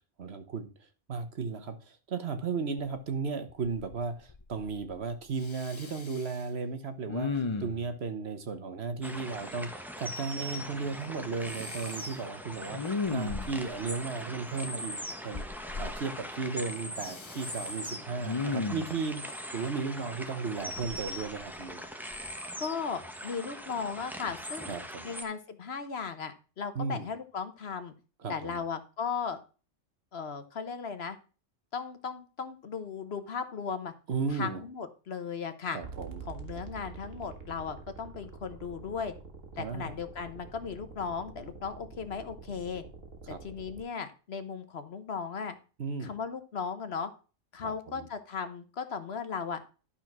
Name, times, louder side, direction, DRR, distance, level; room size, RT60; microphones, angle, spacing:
voice 1, 0.2-0.7 1.1-15.0 15.2-15.4 15.8-21.8 24.7-25.1 26.7-27.1 28.2-28.6 34.1-34.6 35.7-36.2 39.6-40.0 43.3-43.4 45.8-46.1 47.6-48.0, right 4 dB, 55° right, 9 dB, 1.2 m, -35 dB
Respiratory sounds, 3.5-4.0 4.3-5.0 5.4-6.4 7.1-7.9 11.5-12.1 12.7-13.8 15.3-15.9 17.0-17.7 18.2-19.0 20.8-21.7 22.1-22.3, left 4 dB, 30° left, 0.5 m, -36 dB
sound 1, 9.0-25.2, equal, ahead, 1.0 m, -41 dB
voice 2, 22.6-24.7 25.0-27.9 28.3-29.4 30.1-31.2 31.7-33.9 34.3-35.8 36.3-39.1 39.6-42.8 43.3-45.6 46.0-47.1 47.5-49.6, left 6 dB, 55° left, 10 dB, 1.2 m, -36 dB
sound 2, 35.8-43.8, right 5 dB, 90° right, 1.8 m, -46 dB
12.0 x 4.3 x 6.0 m, 0.36 s
omnidirectional pair, 1.3 m